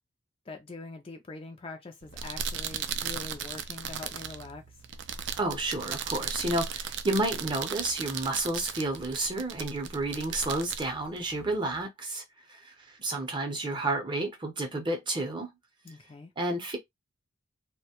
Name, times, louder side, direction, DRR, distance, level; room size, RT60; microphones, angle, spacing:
voice 1, 0.5-4.6 15.8-16.3, left 3 dB, 30° left, 0.4 m, -43 dB
sound 1, 2.0-11.8, right 7 dB, 60° right, 0.3 m, -37 dB
voice 2, 5.4-12.2 12.5-15.5 16.4-16.8, right 2 dB, 25° right, 0.6 m, -31 dB
2.6 x 2.1 x 2.8 m
head